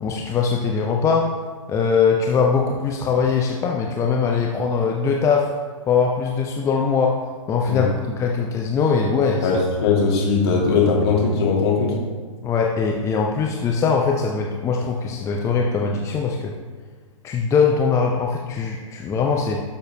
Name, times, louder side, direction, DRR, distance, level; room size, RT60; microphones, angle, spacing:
voice 1, 0.0-1.3 1.7-5.5 5.9-7.2 7.5-9.5 12.4-16.5 17.2-19.6, left 5 dB, 15° left, 1 dB, 0.7 m, -21 dB
voice 2, 9.4-11.9, left 4 dB, 50° left, -3 dB, 2.7 m, -19 dB
11.0 x 6.6 x 3.2 m, 1.5 s
figure-of-eight pair, 110°, 17 cm